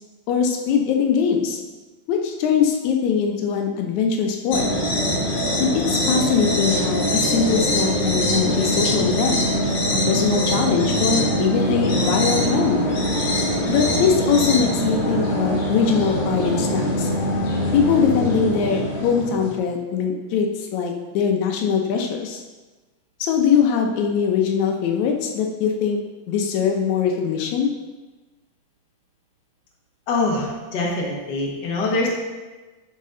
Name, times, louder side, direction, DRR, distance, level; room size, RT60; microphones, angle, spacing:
voice 1, 0.3-1.6 2.1-4.7 5.6-9.4 10.1-12.8 13.7-17.1 17.7-22.4 23.2-26.0 26.3-27.7, left 7 dB, 80° left, 3 dB, 2.1 m, -21 dB
sound 1, 4.5-19.6, equal, 65° left, 2.9 m, -22 dB
voice 2, 30.1-32.1, left 2 dB, 45° left, -3 dB, 1.6 m, -24 dB
11.0 x 4.2 x 3.8 m, 1.2 s
omnidirectional pair, 3.3 m